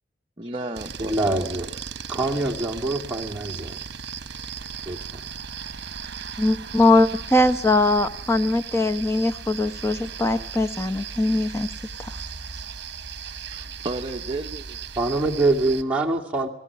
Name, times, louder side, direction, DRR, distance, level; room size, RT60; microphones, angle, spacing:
voice 1, 0.4-1.6 2.1-2.3 13.5-14.8, right 2 dB, 25° right, 2 dB, 0.9 m, -34 dB
sound 1, 0.7-15.8, right 6 dB, 60° right, 1.1 m, -37 dB
voice 2, 1.0-1.7 2.1-3.8 4.9-5.2 15.0-16.5, right 2 dB, 10° right, -3 dB, 2.4 m, -24 dB
voice 3, 6.4-11.7 12.0-12.1, left 2 dB, 15° left, 10 dB, 1.0 m, -21 dB
19.5 x 18.5 x 9.6 m, 0.76 s
head